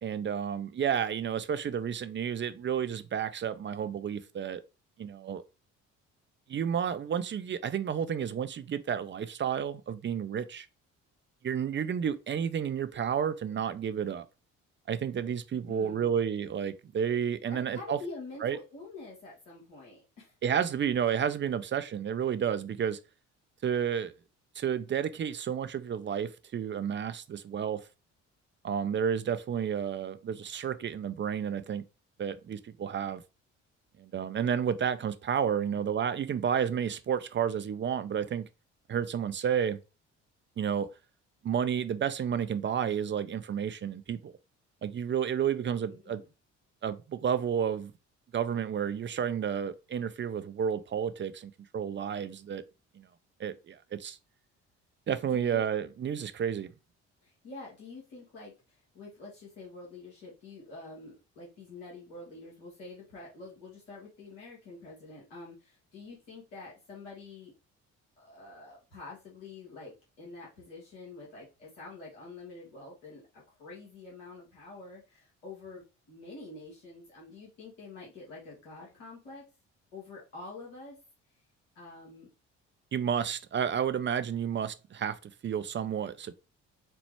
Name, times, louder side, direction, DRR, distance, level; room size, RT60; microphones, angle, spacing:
voice 1, 0.0-4.6 5.0-5.4 6.5-10.7 11.4-14.3 14.9-18.0 18.4-18.6 20.4-23.0 23.6-24.1 24.6-27.9 28.6-31.8 32.2-33.2 34.0-38.5 38.9-39.8 40.6-40.9 41.4-44.3 44.8-46.2 46.8-47.9 48.3-52.6 53.0-53.1 53.4-54.2 55.1-56.7 82.9-86.3, right 8 dB, 30° right, 0.5 m, -31 dB
voice 2, 15.7-16.2 17.5-20.4 45.8-46.3 55.3-55.6 57.2-67.5 68.2-79.5 79.9-81.0 81.7-82.3, left 3 dB, 90° left, 1.4 m, -47 dB
4.3 x 2.0 x 4.5 m
hypercardioid pair, 55°, 36 cm